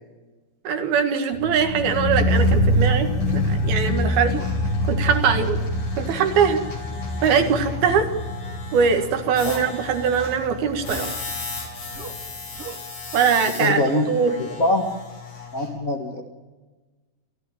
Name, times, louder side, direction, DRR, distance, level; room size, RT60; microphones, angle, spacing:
voice 1, 0.7-4.4 4.9-5.6 6.0-6.6 7.2-8.1 8.7-11.1 13.1-13.8 14.1-14.4, right 6 dB, 65° right, 6 dB, 3.6 m, -21 dB
sound 1, 1.3-12.4 12.6-12.7, equal, 85° left, 3.6 m, -25 dB
Human voice, 2.1-2.4 3.3-3.6 4.3-4.6 6.2-6.4 7.6-8.0 9.2-9.4 10.8-11.2 11.9-12.2 12.5-12.8, right 3 dB, 45° right, 2.3 m, -37 dB
sound 2, 2.3-15.7, left 5 dB, 65° left, 7.7 m, -36 dB
voice 2, 13.6-14.1 14.4-14.9 15.5-16.2, left 1 dB, 40° left, 1 dB, 1.2 m, -23 dB
27.5 x 15.0 x 9.0 m, 1.2 s
omnidirectional pair, 4.8 m